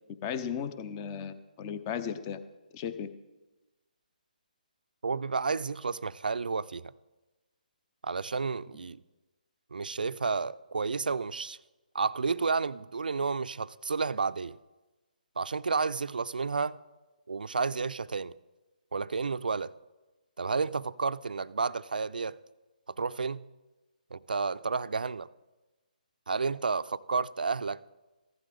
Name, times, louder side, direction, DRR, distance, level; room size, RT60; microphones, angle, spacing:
voice 1, 0.2-2.4 2.7-3.1, left 7 dB, 25° left, 0.7 m, -35 dB
voice 2, 5.0-6.9 8.0-9.0 9.7-11.6 11.9-14.6 15.4-16.8 17.3-18.3 18.9-19.7 20.4-22.4 23.0-23.4 24.1-25.3 26.3-27.8, right 4 dB, 75° right, 0.4 m, -31 dB
15.0 x 12.0 x 3.5 m
figure-of-eight pair, 145°, 5 cm